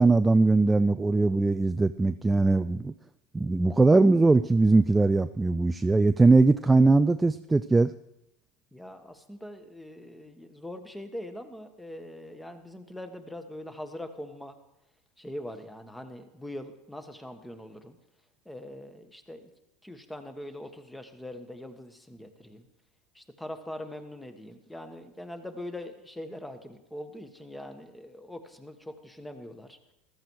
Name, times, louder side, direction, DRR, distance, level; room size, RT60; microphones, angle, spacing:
voice 1, 0.0-2.9 3.3-7.9, right 3 dB, 10° right, 11 dB, 0.4 m, -21 dB
voice 2, 8.7-14.6 15.2-18.0 18.4-19.5 19.8-22.7 23.1-29.8, left 1 dB, 5° left, 8 dB, 1.5 m, -42 dB
15.0 x 13.5 x 4.8 m, 0.88 s
supercardioid pair, 120°, 0 cm